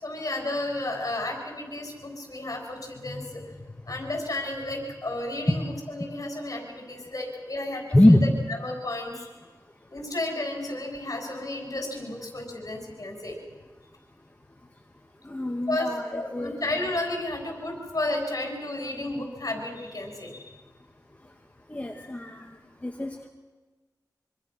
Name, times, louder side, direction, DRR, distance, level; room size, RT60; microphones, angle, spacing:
voice 1, 0.0-9.3 9.9-13.4 15.4-20.5, left 2 dB, 55° left, 3 dB, 6.6 m, -32 dB
voice 2, 15.2-16.0 16.3-16.5 21.7-22.5 22.8-23.3, left 1 dB, 20° left, 2 dB, 2.3 m, -22 dB
25.5 x 25.0 x 6.2 m, 1.3 s
wide cardioid pair, 65°, 7 cm